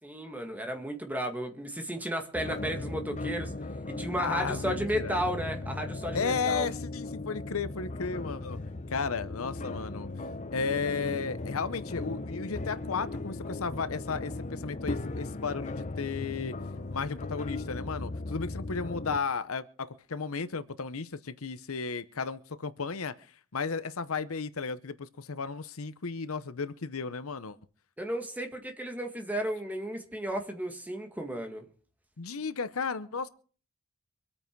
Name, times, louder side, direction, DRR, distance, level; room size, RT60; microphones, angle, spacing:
voice 1, 0.0-3.5 3.9-6.7 28.0-31.6, right 1 dB, 5° right, 1.9 m, -34 dB
sound 1, 2.3-19.2, left 2 dB, 35° left, 0.7 m, -37 dB
voice 2, 4.2-5.2 6.1-8.6 8.9-10.1 10.5-16.6 16.9-27.6 32.2-33.3, left 5 dB, 70° left, 0.8 m, -34 dB
24.5 x 8.8 x 4.6 m
head